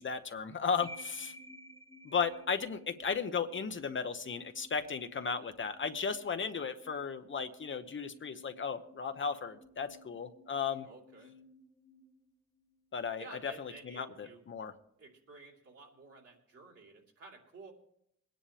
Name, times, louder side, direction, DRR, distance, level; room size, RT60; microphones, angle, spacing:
voice 1, 0.0-1.3 2.0-10.9 12.9-14.7, left 6 dB, 40° left, 8 dB, 0.9 m, -35 dB
sound 1, 0.8-12.9, equal, 10° left, 1.2 m, -55 dB
voice 2, 10.8-11.3 13.2-14.4 15.0-17.7, right 3 dB, 55° right, 0 dB, 3.1 m, -53 dB
22.0 x 10.0 x 3.4 m, 0.71 s
wide cardioid pair, 125°, 29 cm